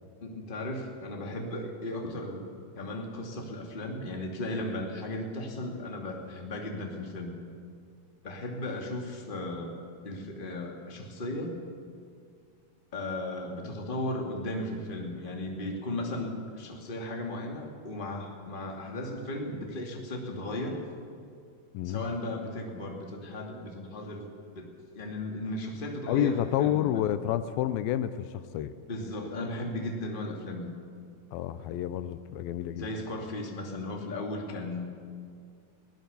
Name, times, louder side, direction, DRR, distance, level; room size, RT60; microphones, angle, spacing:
voice 1, 0.2-2.5 2.7-7.3 8.2-11.6 12.9-20.8 21.8-24.3 24.5-24.7 24.9-27.1 28.9-30.7 32.7-34.8, left 1 dB, 20° left, 1 dB, 1.9 m, -36 dB
voice 2, 21.7-22.1 26.1-28.7 31.3-32.9, left 11 dB, 85° left, 13 dB, 2.5 m, -29 dB
21.5 x 17.5 x 6.9 m, 2.3 s
omnidirectional pair, 4.2 m